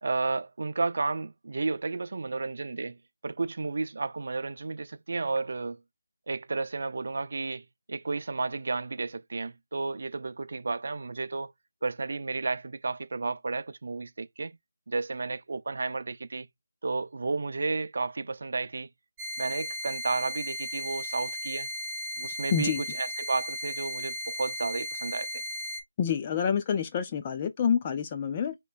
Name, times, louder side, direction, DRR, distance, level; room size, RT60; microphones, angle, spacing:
voice 1, 0.0-3.0 3.2-5.8 6.3-11.5 11.8-14.6 14.9-16.5 16.8-18.9 19.4-21.7 22.2-25.4, right 3 dB, 55° right, 0.5 m, -32 dB
sound 1, 19.2-25.8, left 1 dB, 20° right, 0.8 m, -36 dB
voice 2, 22.5-22.8 26.0-28.6, left 7 dB, 20° left, 0.4 m, -27 dB
5.3 x 3.0 x 2.5 m
figure-of-eight pair, 165°, 0 cm